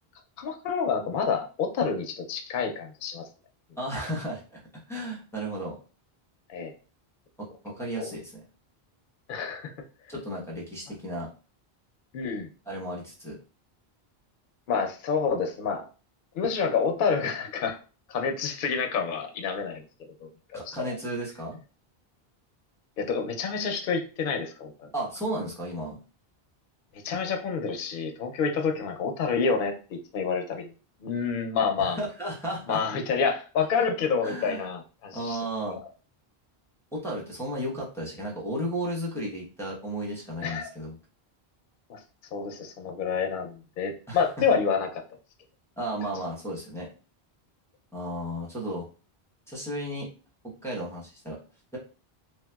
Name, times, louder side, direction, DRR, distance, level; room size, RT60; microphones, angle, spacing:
voice 1, 0.4-3.2 6.5-6.7 8.0-8.1 9.3-9.7 12.1-12.5 14.7-15.8 16.3-17.8 18.1-19.8 20.2-20.9 23.0-24.9 27.0-29.7 30.1-30.7 31.0-32.0 32.7-35.4 40.4-40.7 41.9-42.0 42.3-44.9, left 5 dB, 60° left, 4 dB, 0.7 m, -28 dB
voice 2, 3.8-4.6 4.9-5.8 7.4-8.4 10.1-11.3 12.7-13.4 20.5-21.6 24.9-26.0 31.8-32.8 34.2-34.7 35.1-35.8 36.9-40.9 44.1-44.5 45.8-46.9 47.9-48.9 49.5-50.1 50.6-51.4, right 1 dB, 5° left, -4 dB, 0.8 m, -34 dB
3.1 x 2.8 x 2.2 m, 0.35 s
omnidirectional pair, 1.0 m